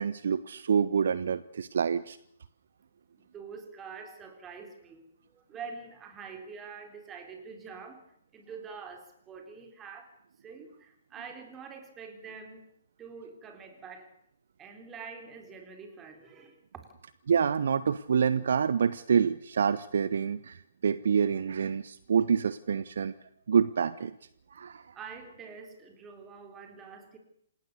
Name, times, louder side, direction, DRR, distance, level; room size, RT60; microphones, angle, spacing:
voice 1, 0.0-2.2 17.3-23.1 23.5-24.2 24.5-24.9, right 7 dB, 55° right, 0.8 m, -27 dB
voice 2, 3.2-5.1 5.3-8.0 8.3-12.7 13.0-14.1 14.6-16.9 24.9-27.2, right 5 dB, 15° right, 3.7 m, -46 dB
27.5 x 18.5 x 6.8 m
figure-of-eight pair, 130°, 0 cm